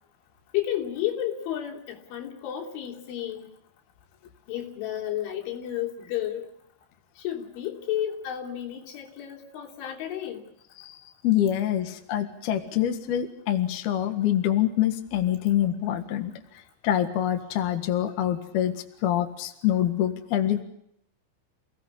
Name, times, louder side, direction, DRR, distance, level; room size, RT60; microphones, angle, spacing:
voice 1, 0.5-3.5 4.5-6.5 7.2-10.4, left 11 dB, 85° left, 1 dB, 5.7 m, -32 dB
voice 2, 11.2-18.7 19.0-20.6, left 11 dB, 60° left, 6 dB, 3.4 m, -25 dB
29.0 x 18.0 x 8.3 m, 0.73 s
omnidirectional pair, 5.4 m